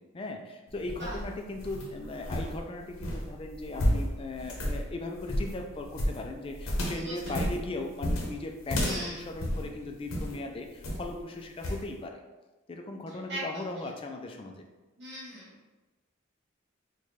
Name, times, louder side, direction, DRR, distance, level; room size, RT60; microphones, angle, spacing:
voice 1, 0.1-12.2 12.7-14.6, left 2 dB, 25° left, 3 dB, 0.3 m, -38 dB
sound 1, 0.7-10.4 10.8-11.2 11.6-11.9, equal, 90° left, 0.7 m, -32 dB
voice 2, 6.9-7.5 8.8-9.3 13.1-13.6 15.0-15.7, right 1 dB, 55° right, -6 dB, 1.2 m, -40 dB
3.9 x 2.2 x 3.1 m, 1.1 s
head